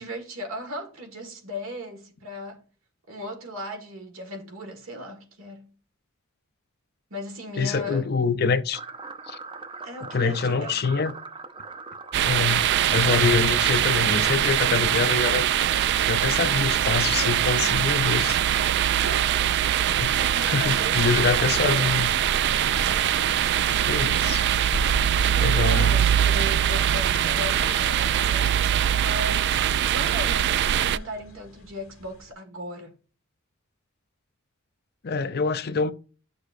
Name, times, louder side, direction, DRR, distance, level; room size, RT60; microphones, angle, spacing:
voice 1, 0.0-2.6 3.1-5.7 7.1-8.1 9.8-10.8 19.0-19.4 20.2-22.2 25.2-28.6 29.0-33.0, left 1 dB, 70° right, 1.9 m, -37 dB
voice 2, 7.6-8.8 9.3-9.4 10.1-11.1 12.2-15.5 16.1-18.4 20.0-20.2 20.4-22.1 23.9-24.4 25.4-26.0 35.0-35.9, left 5 dB, 50° left, 0.5 m, -25 dB
sound 1, 8.7-13.8, right 4 dB, 25° right, 0.6 m, -41 dB
sound 2, 12.1-31.0, right 10 dB, 55° right, 0.3 m, -22 dB
sound 3, 18.7-32.3, left 1 dB, 90° left, 1.5 m, -41 dB
11.0 x 6.5 x 2.6 m
head